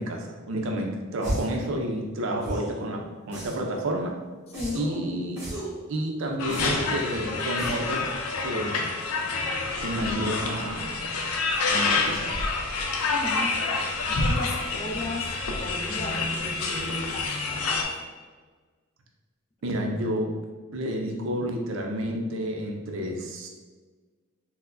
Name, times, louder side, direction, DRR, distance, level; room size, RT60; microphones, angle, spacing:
voice 1, 0.0-4.2 4.7-5.5 5.9-8.1 8.4-8.9 9.8-11.1 11.7-12.3 19.6-20.3 20.7-23.5, right 1 dB, 60° right, 2 dB, 0.4 m, -30 dB
sound 1, 1.2-1.6 2.4-2.8 3.3-3.8 4.5-5.0 5.4-5.8 6.5-7.0 7.6-8.0, right 1 dB, 10° right, 1.2 m, -34 dB
voice 2, 4.5-4.9 13.1-13.6 14.1-18.1, left 2 dB, 30° left, 0 dB, 0.4 m, -36 dB
sound 2, 6.4-17.8, left 3 dB, 85° left, 0.5 m, -28 dB
4.3 x 2.1 x 2.5 m, 1.4 s
head